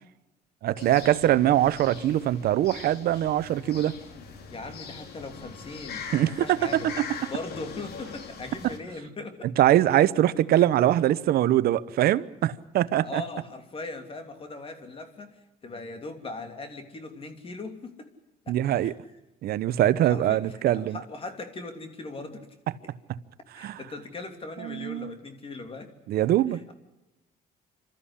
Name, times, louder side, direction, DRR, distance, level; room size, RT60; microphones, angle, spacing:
voice 1, 0.6-4.0 6.1-6.3 9.6-13.2 18.5-18.9 19.4-21.0 23.6-23.8 24.6-25.2 26.1-26.6, right 13 dB, 65° right, 0.9 m, -23 dB
sound 1, 0.8-8.8, left 6 dB, 70° left, 3.0 m, -41 dB
voice 2, 4.5-6.9 7.3-9.5 10.5-10.6 13.0-18.1 18.4-18.9 20.0-22.5 22.8-22.9 23.5-25.9 26.4-26.7, left 3 dB, 35° left, 3.1 m, -39 dB
27.0 x 13.5 x 10.0 m
cardioid pair, 110°, 17 cm